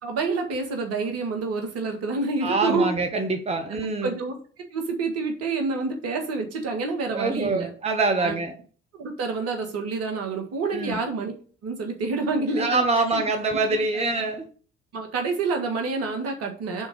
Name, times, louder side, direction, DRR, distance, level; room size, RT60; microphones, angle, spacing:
voice 1, 0.0-2.9 3.7-3.8 4.0-4.3 4.7-7.7 8.2-8.4 9.0-11.3 11.6-13.2 13.9-14.0 14.9-16.9, right 3 dB, 55° right, 4 dB, 1.6 m, -28 dB
voice 2, 2.4-4.2 7.1-8.5 10.7-11.0 12.6-14.4, right 3 dB, 20° right, 5 dB, 1.0 m, -25 dB
6.2 x 3.8 x 6.2 m, 0.41 s
figure-of-eight pair, 45°, 29 cm